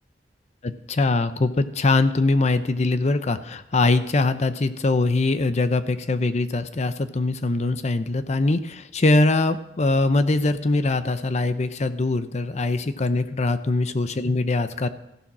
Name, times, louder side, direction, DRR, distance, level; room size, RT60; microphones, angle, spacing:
voice 1, 0.6-14.9, left 2 dB, 40° left, 12 dB, 0.6 m, -22 dB
14.5 x 11.0 x 6.0 m, 0.85 s
head